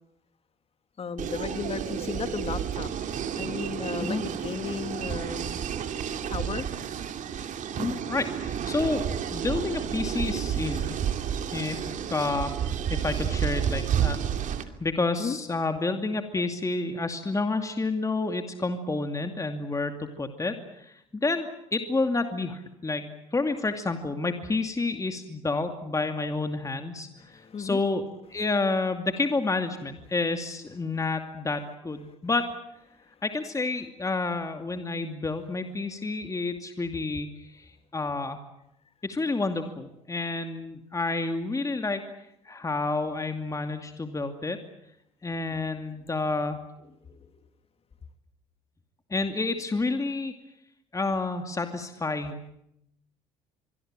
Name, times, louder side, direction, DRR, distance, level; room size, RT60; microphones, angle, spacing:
voice 1, 1.0-2.9 3.4-5.6 6.3-6.7 15.2-15.4 27.2-27.8 47.1-47.2, left 6 dB, 40° left, 9 dB, 2.5 m, -34 dB
sound 1, 1.2-14.6, right 8 dB, 60° right, 2.6 m, -31 dB
voice 2, 7.8-11.0 11.5-12.5 12.9-14.2 14.8-28.0 28.3-32.5 33.2-38.4 39.0-42.0 42.4-44.6 45.2-46.6 49.1-50.3 50.9-52.4, left 3 dB, 20° left, 6 dB, 2.5 m, -29 dB
24.5 x 22.5 x 9.0 m, 0.81 s
supercardioid pair, 70°, 15 cm